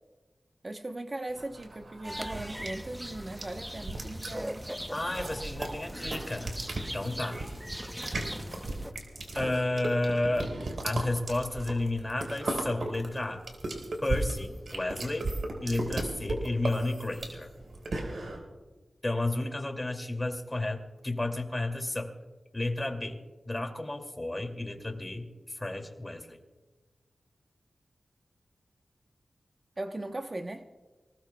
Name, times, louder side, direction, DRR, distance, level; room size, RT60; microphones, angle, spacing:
voice 1, 0.6-4.7 29.8-30.7, right 2 dB, 35° right, 0.9 m, -38 dB
sound 1, 1.4-18.4, right 2 dB, 70° right, 4.2 m, -36 dB
sound 2, 2.0-8.9, equal, 5° right, 0.7 m, -40 dB
voice 2, 4.9-7.4 9.3-10.5 10.8-13.4 14.0-15.3 15.6-17.5 19.0-22.1 22.5-23.2 23.5-26.4, left 2 dB, 20° left, 2.4 m, -32 dB
28.0 x 19.0 x 2.3 m
wide cardioid pair, 75°, 0 cm